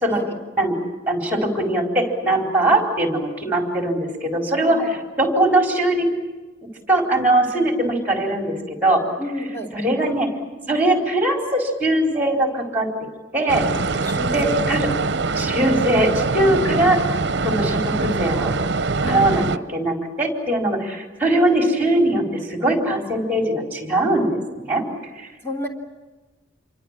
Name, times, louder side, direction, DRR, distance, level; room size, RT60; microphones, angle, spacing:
voice 1, 1.1-6.1 6.9-9.1 9.7-10.3 10.7-12.9 13.3-13.7 14.3-14.9 15.3-17.0 17.4-18.6 19.0-19.4 19.7-24.8 25.1-25.3, right 1 dB, 10° right, 2 dB, 4.3 m, -21 dB
voice 2, 9.2-9.7 14.0-14.6 16.4-16.9 19.0-19.3 25.4-25.7, equal, 15° left, 0 dB, 3.2 m, -30 dB
sound 1, 13.5-19.6, right 3 dB, 65° right, 0.8 m, -23 dB
27.5 x 23.5 x 7.5 m, 1.2 s
head